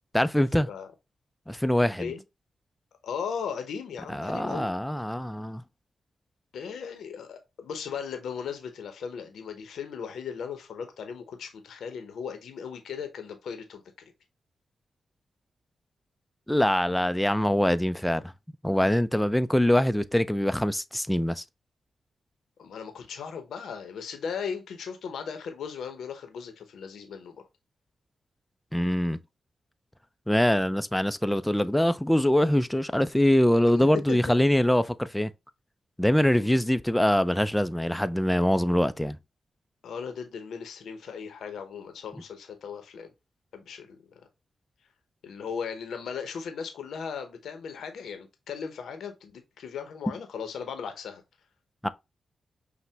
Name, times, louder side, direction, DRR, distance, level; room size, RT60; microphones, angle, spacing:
voice 1, 0.1-0.7 1.5-2.1 4.1-5.6 16.5-18.3 18.6-21.4 28.7-29.2 30.3-35.3 36.0-39.2 51.8-51.9, left 1 dB, 5° left, 0.4 m, -24 dB
voice 2, 3.0-4.7 6.5-13.8 22.6-27.4 33.7-33.8 36.4-36.5 39.8-43.1 43.5-44.2 45.2-51.2, left 6 dB, 80° left, 0.7 m, -37 dB
5.7 x 2.1 x 3.3 m
supercardioid pair, 45°, 0 cm